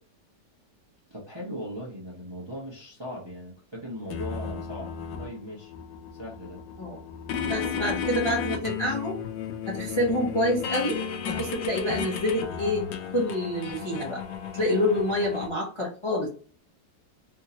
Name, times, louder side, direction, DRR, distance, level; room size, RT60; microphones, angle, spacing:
voice 1, 1.1-4.9 5.2-5.7 6.1-6.6, equal, 25° right, -5 dB, 0.6 m, -38 dB
sound 1, 4.1-15.5, left 7 dB, 85° left, 1.3 m, -34 dB
voice 2, 7.4-9.2 9.6-11.0 11.3-12.9 13.1-14.2 14.5-16.3, left 1 dB, 30° left, -4 dB, 0.5 m, -27 dB
3.6 x 2.7 x 2.7 m, 0.41 s
omnidirectional pair, 1.9 m